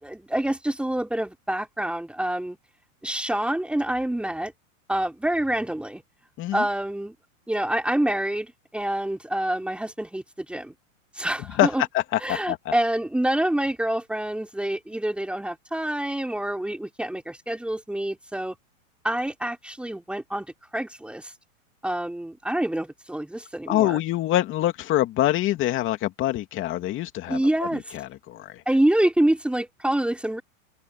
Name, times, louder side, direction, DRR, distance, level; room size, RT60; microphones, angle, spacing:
voice 1, 0.0-2.6 3.0-4.5 4.9-6.0 6.5-7.1 7.5-10.7 11.1-11.8 12.2-18.6 19.0-21.3 21.8-24.0 27.3-28.0 28.7-30.4, right 1 dB, 5° right, 4.6 m, -26 dB
voice 2, 11.9-12.7 23.7-27.7 27.9-28.6, left 14 dB, 30° left, 2.7 m, -25 dB
hypercardioid pair, 140°, 40 cm